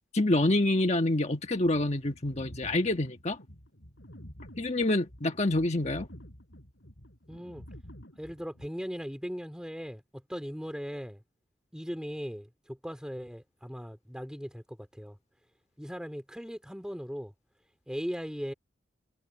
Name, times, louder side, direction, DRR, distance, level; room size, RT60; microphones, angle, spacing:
voice 1, 0.1-3.4 4.6-6.1, left 1 dB, 35° left, 1.4 m, -27 dB
sound 1, 1.5-8.7, equal, 65° left, 6.5 m, -49 dB
voice 2, 7.3-7.6 8.2-10.0 10.3-11.2 11.7-15.2 15.8-17.3 17.9-18.5, equal, 5° right, 3.1 m, -38 dB
head